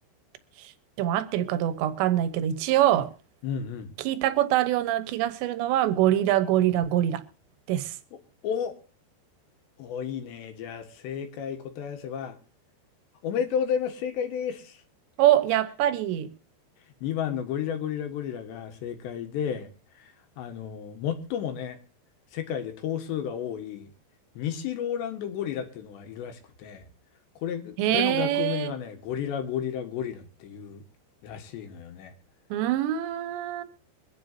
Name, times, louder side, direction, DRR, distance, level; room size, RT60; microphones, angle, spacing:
voice 1, 1.0-3.1 4.0-7.2 7.7-7.9 15.2-16.3 27.8-28.7 32.5-33.6, right 12 dB, 80° right, 3.2 m, -24 dB
voice 2, 3.4-3.9 8.4-8.8 9.8-12.4 13.2-14.8 17.0-19.7 20.0-21.8 22.3-23.9 24.4-26.9 27.4-30.8 31.2-32.2, left 8 dB, 75° left, 3.5 m, -32 dB
23.5 x 10.5 x 2.8 m
omnidirectional pair, 5.3 m